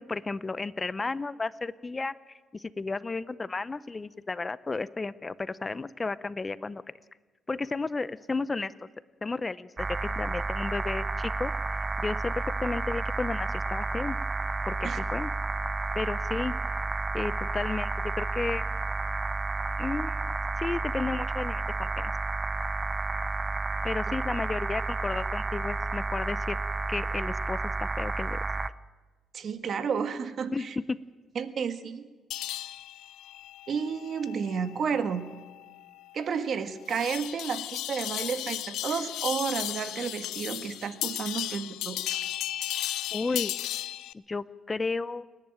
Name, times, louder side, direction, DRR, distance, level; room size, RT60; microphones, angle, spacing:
voice 1, 0.0-2.1 2.5-6.8 7.5-8.7 9.2-11.5 12.0-14.2 14.6-15.3 15.9-16.5 17.1-17.9 18.2-18.6 19.8-20.3 20.6-22.1 23.8-26.6 26.9-28.4 30.5-31.0 43.1-43.6 44.1-45.2, left 3 dB, 25° left, 17 dB, 0.6 m, -33 dB
sound 1, 9.8-28.7, right 3 dB, 30° right, 0.6 m, -31 dB
voice 2, 29.3-30.8 31.3-32.1 33.7-35.2 36.1-42.2, right 6 dB, 55° right, 10 dB, 1.5 m, -31 dB
sound 2, 32.3-44.1, left 13 dB, 85° left, 0.6 m, -35 dB
28.5 x 10.5 x 8.9 m, 1.3 s
cardioid pair, 90°, 0 cm